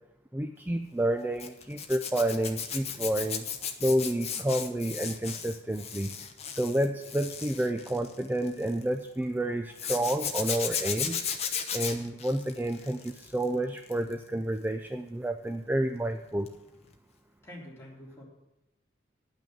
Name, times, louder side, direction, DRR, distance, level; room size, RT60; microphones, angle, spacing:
voice 1, 0.3-6.1 6.5-11.2 11.7-16.5, right 1 dB, 10° right, 7 dB, 0.3 m, -30 dB
Zipper (clothing), 1.4-8.8 9.8-13.4 13.8-14.1 16.5-16.6 16.9-17.0, left 7 dB, 35° left, 0.9 m, -35 dB
voice 2, 17.4-18.2, left 1 dB, 15° left, -6 dB, 3.3 m, -46 dB
10.5 x 6.1 x 7.7 m, 0.94 s
head